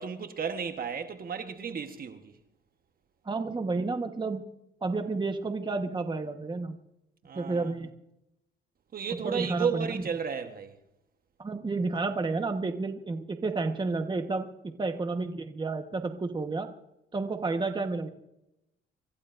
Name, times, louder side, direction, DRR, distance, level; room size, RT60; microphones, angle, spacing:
voice 1, 0.0-2.3 7.2-7.7 8.9-10.8, right 6 dB, 45° right, 1.3 m, -33 dB
voice 2, 3.2-4.4 4.8-6.8 7.3-7.9 9.2-10.0 11.4-16.7 17.1-18.1, right 3 dB, 25° right, 1.2 m, -31 dB
27.5 x 14.5 x 2.6 m
cardioid pair, 90°, 20 cm